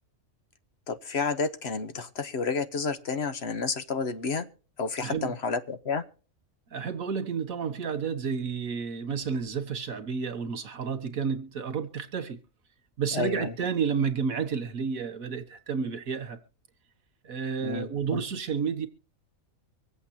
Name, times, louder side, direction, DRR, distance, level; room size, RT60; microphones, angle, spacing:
voice 1, 0.9-4.5 4.8-6.0 13.1-13.5 17.6-18.2, left 4 dB, 55° left, 1.1 m, -30 dB
voice 2, 5.0-5.4 6.7-12.4 13.0-16.4 17.2-18.9, right 6 dB, 80° right, 1.9 m, -31 dB
24.5 x 8.3 x 2.8 m
omnidirectional pair, 1.4 m